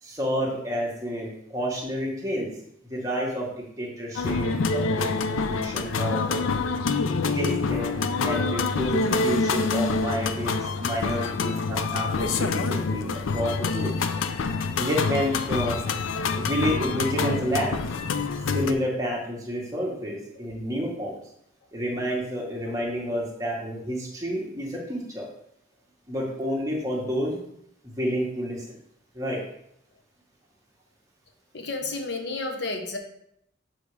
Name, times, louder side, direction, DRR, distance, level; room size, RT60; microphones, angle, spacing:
voice 1, 0.0-2.5 2.9-6.4 7.3-13.1 13.3-13.9 14.8-15.8 16.3-17.7 18.5-21.2 21.7-25.3 26.1-27.4 27.8-28.8 29.1-29.4, equal, 15° right, -3 dB, 1.2 m, -29 dB
sound 1, 4.2-18.7, left 4 dB, 85° left, 0.4 m, -26 dB
voice 2, 31.5-33.0, left 3 dB, 55° left, 4 dB, 0.9 m, -32 dB
7.0 x 2.9 x 4.7 m, 0.74 s
head